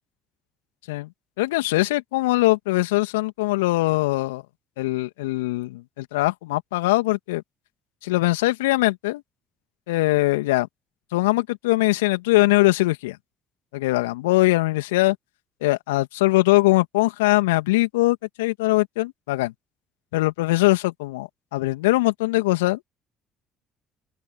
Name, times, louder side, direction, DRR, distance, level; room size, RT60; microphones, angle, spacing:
voice 1, 1.4-4.4 4.8-7.4 8.0-9.2 9.9-10.7 11.1-13.2 13.7-15.2 15.6-19.5 20.1-22.8, left 20 dB, 75° left, 2.5 m, -21 dB
open air
figure-of-eight pair, 50°, 0 cm